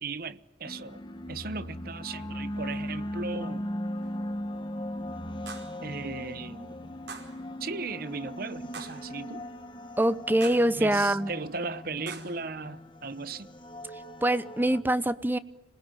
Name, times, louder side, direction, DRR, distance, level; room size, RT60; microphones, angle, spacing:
voice 1, 0.0-1.0 1.3-3.8 5.8-7.0 7.6-9.5 10.7-13.5, right 4 dB, 55° right, 1.0 m, -37 dB
sound 1, 0.6-14.8, left 1 dB, 30° left, 1.6 m, -38 dB
sound 2, 4.0-4.2 5.5-5.8 7.1-7.4 8.7-9.1 10.4-10.8 12.1-12.4, right 5 dB, 90° right, 4.9 m, -43 dB
voice 2, 10.0-11.3 14.2-15.4, right 1 dB, 10° right, 0.8 m, -24 dB
27.0 x 20.5 x 9.1 m
head